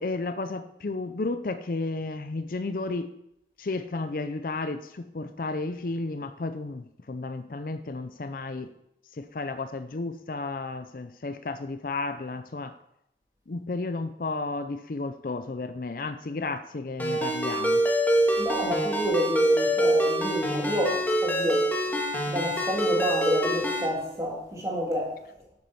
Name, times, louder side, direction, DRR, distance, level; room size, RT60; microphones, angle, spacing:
voice 1, 0.0-3.1 3.6-8.7 9.1-12.7 13.5-17.8, left 3 dB, 50° left, 0.5 m, -33 dB
Ringtone, 17.0-23.9, right 1 dB, 10° left, 1.6 m, -25 dB
voice 2, 18.4-21.7 22.3-25.2, equal, 20° right, 2.7 m, -29 dB
8.8 x 7.6 x 5.4 m
head